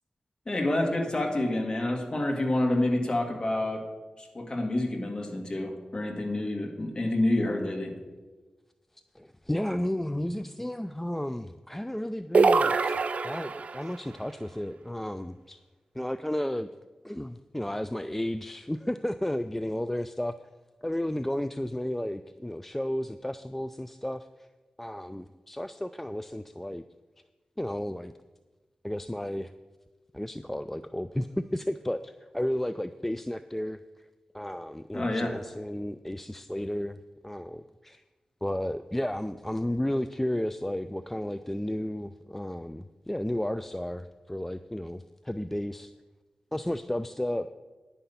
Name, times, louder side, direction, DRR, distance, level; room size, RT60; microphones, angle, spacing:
voice 1, 0.5-3.8 4.2-7.9 34.9-35.3, left 1 dB, 35° left, 2 dB, 1.9 m, -28 dB
voice 2, 9.2-15.6 16.0-16.7 17.0-20.4 20.8-24.5 24.8-26.8 27.6-28.1 28.8-29.5 30.1-33.8 34.3-38.0 38.4-45.9 46.5-47.5, left 1 dB, 10° left, 11 dB, 0.3 m, -33 dB
sound 1, 12.3-13.9, right 4 dB, 60° right, 0.5 m, -24 dB
10.0 x 5.7 x 6.9 m, 1.2 s
cardioid pair, 65°, 3 cm